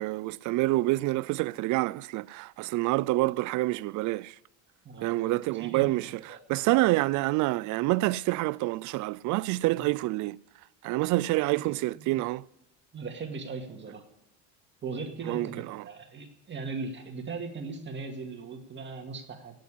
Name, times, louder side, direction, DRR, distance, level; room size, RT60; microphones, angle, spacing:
voice 1, 0.0-4.3 5.0-10.4 10.8-12.4 15.3-15.8, right 19 dB, 60° right, 0.5 m, -27 dB
voice 2, 4.8-6.4 9.7-9.8 11.4-12.2 12.9-14.0 14.8-19.6, right 4 dB, 35° right, 2.2 m, -39 dB
14.5 x 9.5 x 8.5 m
cardioid pair, 115°, 33 cm